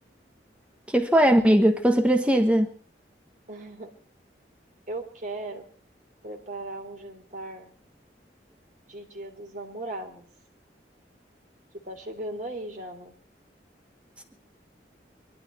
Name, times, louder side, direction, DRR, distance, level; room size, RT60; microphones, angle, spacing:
voice 1, 0.9-2.7, right 1 dB, 5° right, 1.2 m, -19 dB
voice 2, 3.5-3.9 4.9-5.7 6.2-7.7 8.9-10.3 11.8-13.1, right 2 dB, 45° right, 3.1 m, -37 dB
22.5 x 12.5 x 4.5 m
head